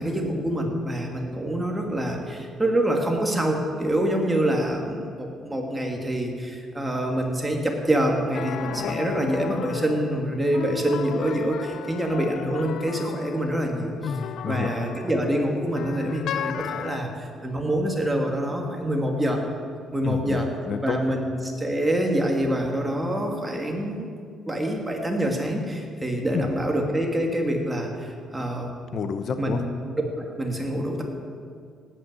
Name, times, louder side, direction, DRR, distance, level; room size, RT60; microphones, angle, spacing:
voice 1, 0.0-13.9 14.4-19.4 19.9-20.5 20.8-24.1 24.5-27.9 28.3-28.8 29.4-29.7 30.2-31.0, right 1 dB, 10° right, 1 dB, 2.6 m, -26 dB
sound 1, 8.3-17.0, left 9 dB, 70° left, 0.6 m, -35 dB
voice 2, 14.0-14.7 20.0-21.0 26.3-26.5 28.9-29.6, left 6 dB, 55° left, 9 dB, 0.9 m, -29 dB
17.5 x 9.2 x 8.3 m, 2.2 s
cardioid pair, 110°, 0 cm